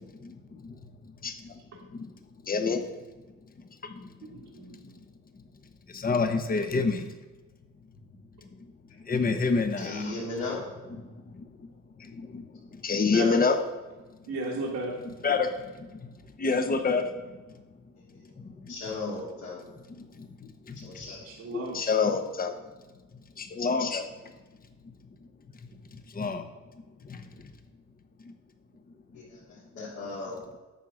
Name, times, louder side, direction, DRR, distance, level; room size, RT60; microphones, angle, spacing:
voice 1, 0.2-0.8 1.2-1.5 1.9-2.1 2.4-2.8 3.8-4.1 5.9-7.1 9.1-10.0 11.4-11.5 12.0-12.4 12.7-13.6 15.0-15.5 15.8-15.9 16.4-17.1 18.4-18.7 20.0-20.7 21.5-22.6 23.4-24.1 26.1-26.4 27.1-27.2, left 4 dB, 30° left, 7 dB, 1.1 m, -27 dB
voice 2, 4.2-5.0 13.1-13.4 14.3-15.0 21.2-21.9, right 2 dB, 60° right, -2 dB, 1.6 m, -35 dB
voice 3, 9.8-10.6 18.1-18.3 18.7-19.7 20.8-21.2 29.1-30.4, left 3 dB, 70° left, -8 dB, 3.3 m, -36 dB
9.3 x 5.5 x 6.2 m, 1.2 s
cardioid pair, 90°, 30 cm